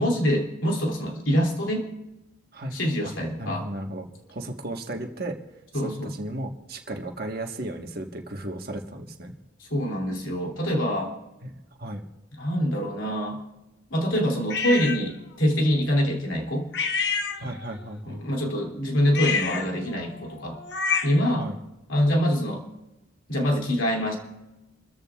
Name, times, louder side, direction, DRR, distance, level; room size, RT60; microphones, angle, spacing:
voice 1, 0.0-1.9 2.7-3.7 5.7-6.2 9.6-11.2 12.4-13.4 13.9-16.7 18.1-20.6 21.0-21.5 21.9-22.6 23.3-24.1, equal, 75° left, 1 dB, 2.8 m, -25 dB
voice 2, 2.5-3.1 3.4-5.4 5.7-9.3 11.4-11.5 11.8-12.0 17.4-18.3 21.4-21.6, right 1 dB, 50° right, 3 dB, 1.4 m, -35 dB
sound 1, 14.5-15.0 16.7-17.8 19.1-21.3, left 5 dB, 55° left, 0.9 m, -28 dB
29.0 x 14.5 x 2.4 m, 1.0 s
head